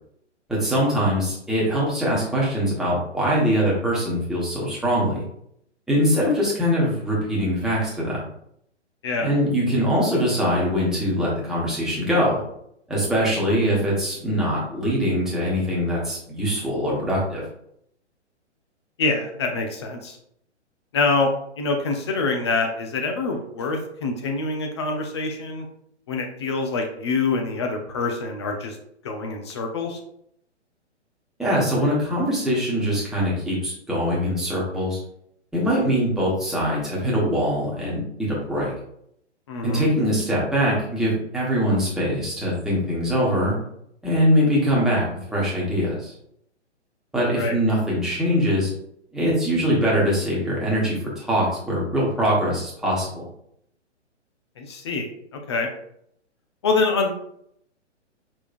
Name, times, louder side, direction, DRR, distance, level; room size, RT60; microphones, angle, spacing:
voice 1, 0.5-5.2 5.9-8.2 9.2-12.4 12.9-17.4 31.4-35.0 35.5-38.7 39.6-43.5 44.0-45.1 45.3-46.1 47.1-48.7 49.1-53.2, equal, ahead, -7 dB, 1.1 m, -22 dB
voice 2, 19.0-20.2 20.9-21.3 21.6-25.7 26.1-28.8 29.0-30.0 39.5-39.9 47.3-47.5 54.6-55.1 55.5-55.7 56.6-57.1, left 3 dB, 25° left, 3 dB, 0.4 m, -25 dB
5.2 x 3.4 x 2.5 m, 0.71 s
figure-of-eight pair, 130°, 36 cm